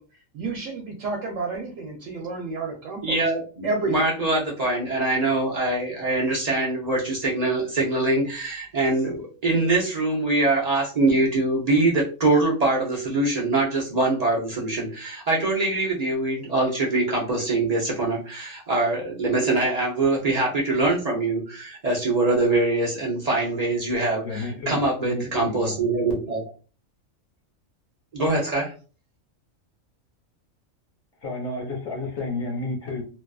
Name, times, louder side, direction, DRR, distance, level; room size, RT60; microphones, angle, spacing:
voice 1, 0.3-3.2 3.6-3.9, right 3 dB, 70° right, 1 dB, 0.9 m, -30 dB
voice 2, 3.0-26.5 28.1-28.7, right 2 dB, 50° right, -3 dB, 0.4 m, -23 dB
voice 3, 24.2-25.8 31.2-33.0, left 3 dB, 65° left, -1 dB, 1.1 m, -31 dB
2.6 x 2.3 x 2.3 m, 0.36 s
omnidirectional pair, 1.4 m